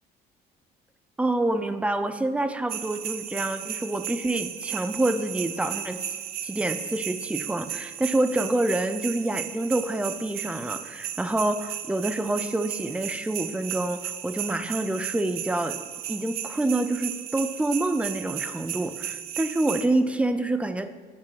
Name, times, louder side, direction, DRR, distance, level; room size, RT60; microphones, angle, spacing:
voice 1, 1.2-6.0 6.4-15.8 16.1-20.9, right 2 dB, 5° right, 10 dB, 0.5 m, -27 dB
sound 1, 2.7-19.9, right 10 dB, 70° right, 0.6 m, -35 dB
9.4 x 6.1 x 4.5 m, 1.5 s
cardioid pair, 110°, 17 cm